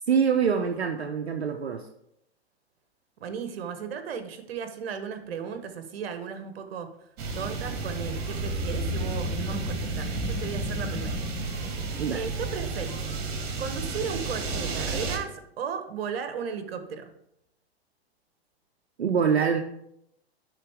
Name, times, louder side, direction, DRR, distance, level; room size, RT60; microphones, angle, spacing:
voice 1, 0.1-1.8 12.0-12.2 19.0-19.6, right 7 dB, 85° right, 4 dB, 0.7 m, -24 dB
voice 2, 3.2-6.9 7.3-11.2 12.1-13.0 13.6-17.1, right 6 dB, 65° right, 8 dB, 1.1 m, -35 dB
sound 1, 7.2-15.2, right 3 dB, 50° right, 1.8 m, -31 dB
sound 2, 8.7-14.0, left 7 dB, 20° left, 0.6 m, -39 dB
11.0 x 3.9 x 3.5 m, 0.77 s
hypercardioid pair, 105°, 32 cm